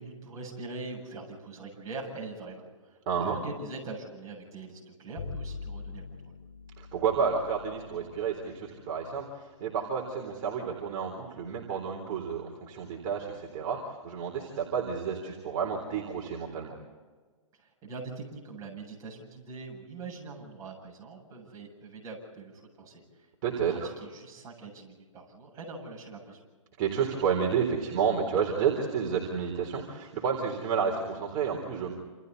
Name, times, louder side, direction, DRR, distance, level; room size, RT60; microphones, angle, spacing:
voice 1, 0.0-6.3 17.5-23.3 23.7-26.4, right 3 dB, 20° right, -2 dB, 7.7 m, -43 dB
voice 2, 3.1-3.4 6.8-16.7 23.4-23.9 26.8-31.9, right 6 dB, 35° right, -1 dB, 3.9 m, -30 dB
Bowed string instrument, 5.2-11.6, left 4 dB, 55° left, 4.8 m, -45 dB
28.5 x 28.0 x 4.1 m, 1.4 s
hypercardioid pair, 150°, 17 cm